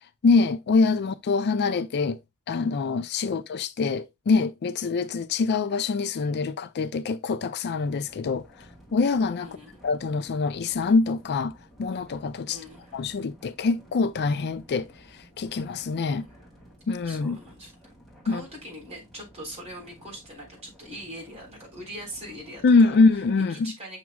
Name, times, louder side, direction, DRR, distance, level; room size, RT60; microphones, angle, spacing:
voice 1, 0.2-2.2 2.5-8.7 8.9-9.5 9.8-12.6 12.9-16.3 16.9-17.4 18.3-18.4 22.6-23.7, left 4 dB, 50° left, 0.4 m, -24 dB
sound 1, 7.8-23.5, equal, ahead, 2.5 m, -53 dB
voice 2, 9.4-9.8 12.4-13.0 16.1-16.3 17.0-17.9 18.2-23.0 23.4-24.0, equal, 30° right, 3.9 m, -42 dB
7.2 x 6.0 x 2.3 m
head